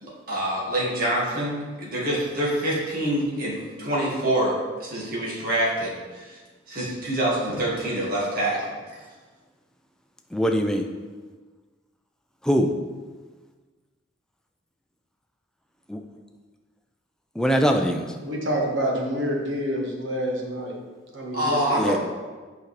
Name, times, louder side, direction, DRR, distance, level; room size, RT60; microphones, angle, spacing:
voice 1, 0.0-6.4 6.7-8.7 21.3-22.0, right 1 dB, 45° right, -5 dB, 1.8 m, -26 dB
voice 2, 10.3-10.8 12.4-12.7 15.9-16.0 17.4-18.1 21.8-22.0, equal, 5° left, 4 dB, 0.4 m, -22 dB
voice 3, 18.2-20.7 21.1-22.0, equal, 70° right, -2 dB, 1.4 m, -27 dB
8.2 x 5.1 x 3.2 m, 1.4 s
head